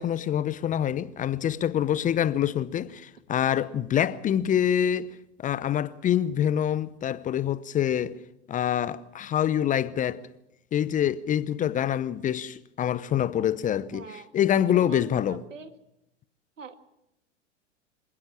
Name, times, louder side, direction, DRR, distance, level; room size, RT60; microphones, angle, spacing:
voice 1, 0.0-5.1 5.4-8.2 8.5-10.2 10.7-14.1 14.3-15.4, left 10 dB, 20° left, 0.7 m, -26 dB
voice 2, 13.9-14.3 14.7-15.7 16.6-16.8, right 5 dB, 80° right, 2.1 m, -42 dB
26.0 x 16.5 x 7.4 m
figure-of-eight pair, 95°, 37 cm